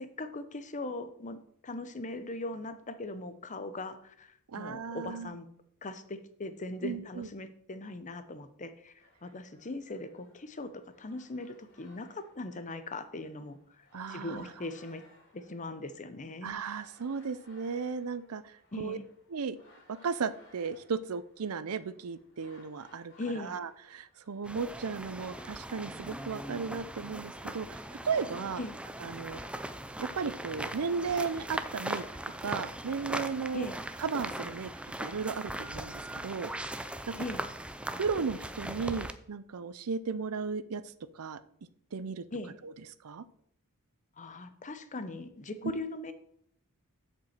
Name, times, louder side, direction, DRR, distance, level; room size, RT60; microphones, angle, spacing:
voice 1, 0.0-5.5 5.8-15.0 15.3-16.5 18.7-19.0 23.2-23.6 28.6-28.7 33.5-33.8 37.2-37.4 42.3-42.5 44.2-46.1, left 2 dB, 35° left, 11 dB, 0.8 m, -40 dB
voice 2, 4.5-5.4 6.8-7.3 13.9-14.5 16.4-19.0 19.3-19.6 19.9-28.6 29.0-29.4 30.0-32.1 32.4-33.7 34.0-34.7 35.0-36.8 37.1-37.2 38.0-40.8 41.1-41.4 41.9-42.3 42.6-42.7 43.0-43.2, right 5 dB, 75° right, 15 dB, 0.5 m, -35 dB
sound 1, 9.0-28.4, left 2 dB, 50° left, 3.2 m, -62 dB
sound 2, 24.4-39.1, right 1 dB, 5° right, 0.4 m, -39 dB
7.3 x 5.3 x 7.3 m, 0.68 s
head